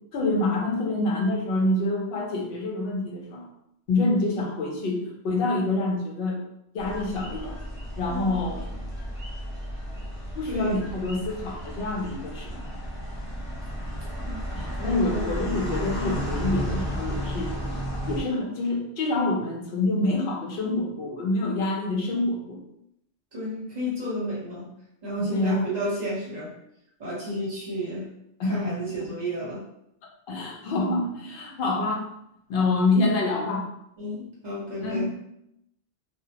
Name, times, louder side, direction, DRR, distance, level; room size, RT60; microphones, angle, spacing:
voice 1, 0.1-3.5 3.9-6.4 6.7-7.6 8.0-8.6 10.4-12.7 14.6-17.5 18.1-22.6 25.3-25.7 28.4-28.8 30.3-32.1 32.5-33.7 34.8-35.2, left 2 dB, 65° left, 0 dB, 0.7 m, -26 dB
sound 1, 6.8-18.2, equal, 5° right, 0.5 m, -33 dB
voice 2, 8.1-8.4 10.5-10.8 14.2-14.4 14.8-15.3 23.3-24.7 25.0-26.5 27.0-28.1 28.5-29.6 34.0-35.1, equal, 40° right, -6 dB, 0.8 m, -31 dB
2.2 x 2.0 x 2.8 m, 0.77 s
omnidirectional pair, 1.2 m